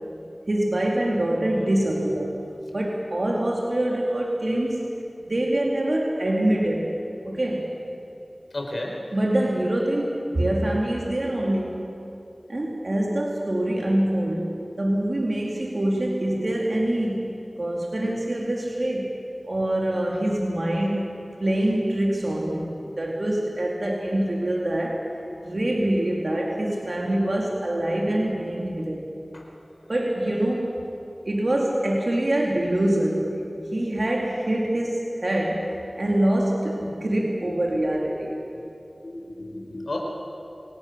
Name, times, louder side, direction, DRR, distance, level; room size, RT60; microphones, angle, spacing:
voice 1, 0.5-2.4 2.7-4.9 5.3-6.9 7.2-7.9 9.1-11.9 12.5-19.2 19.5-29.1 29.9-30.8 31.3-33.4 33.7-38.4, right 1 dB, 60° right, -1 dB, 2.5 m, -25 dB
voice 2, 8.5-8.9 29.3-29.4 37.4-37.8 38.5-38.6 39.0-40.0, left 2 dB, 75° left, 0 dB, 4.8 m, -33 dB
26.0 x 18.0 x 6.8 m, 2.9 s
wide cardioid pair, 45°, 0 cm